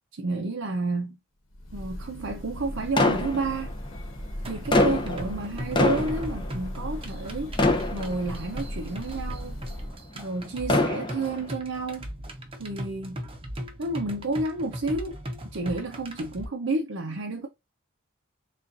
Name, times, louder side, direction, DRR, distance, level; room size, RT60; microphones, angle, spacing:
voice 1, 0.1-1.2 1.7-3.7 4.5-7.5 7.9-9.5 10.1-12.1 12.6-13.2 13.8-15.2 15.5-17.5, right 2 dB, 70° right, 0.6 m, -30 dB
Breathing / Bird, 1.5-10.0, equal, 90° left, 1.1 m, -37 dB
sound 1, 3.0-4.0 4.5-7.3 7.6-8.6 9.3-9.4 10.4-11.5, left 2 dB, 25° left, 0.7 m, -25 dB
sound 2, 4.4-16.4, equal, 30° right, 0.7 m, -39 dB
6.5 x 2.5 x 2.5 m
head